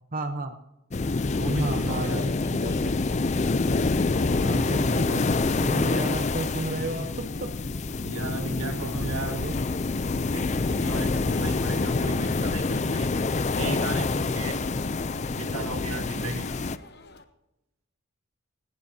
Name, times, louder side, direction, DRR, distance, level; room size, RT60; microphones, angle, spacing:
voice 1, 0.1-0.6 1.6-3.1 4.1-7.5 8.2-9.5, right 2 dB, 40° right, 6 dB, 0.9 m, -34 dB
sound 1, 0.9-17.2, left 3 dB, 50° left, 1.0 m, -49 dB
sound 2, 0.9-16.8, left 3 dB, 30° left, 0.4 m, -26 dB
voice 2, 1.4-2.3 8.0-9.5 10.2-13.1 13.6-14.6 15.4-16.5, right 2 dB, 75° right, 6 dB, 1.7 m, -35 dB
19.0 x 17.5 x 2.8 m, 0.93 s
head